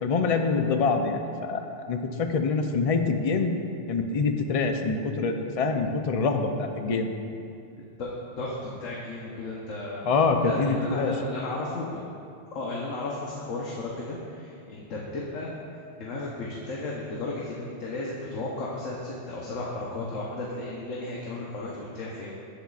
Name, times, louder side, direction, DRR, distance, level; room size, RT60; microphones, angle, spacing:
voice 1, 0.0-3.6 3.9-7.1 10.1-11.1, left 4 dB, 55° left, 5 dB, 0.4 m, -25 dB
voice 2, 7.7-10.0 10.4-12.0 12.5-22.3, left 2 dB, 85° left, -4 dB, 1.3 m, -34 dB
11.5 x 8.4 x 2.4 m, 2.5 s
omnidirectional pair, 1.3 m